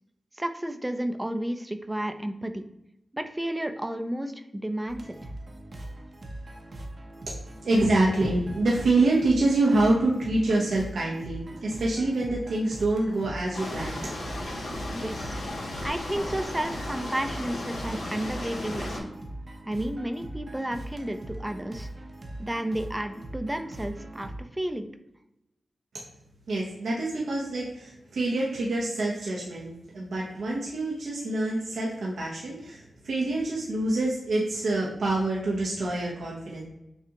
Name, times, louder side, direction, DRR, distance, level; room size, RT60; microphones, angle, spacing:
voice 1, 0.3-2.6 3.1-5.2 14.9-15.4 15.8-19.1 19.7-21.9 22.4-24.9, right 1 dB, 15° right, 8 dB, 0.5 m, -32 dB
sound 1, 4.9-24.4, right 1 dB, 55° right, 0.8 m, -41 dB
voice 2, 7.6-14.1 26.5-36.6, right 2 dB, 85° right, -4 dB, 0.8 m, -26 dB
sound 2, 13.5-19.0, left 1 dB, 90° left, 1.2 m, -35 dB
6.6 x 2.4 x 2.9 m, 0.86 s
cardioid pair, 40°, 0 cm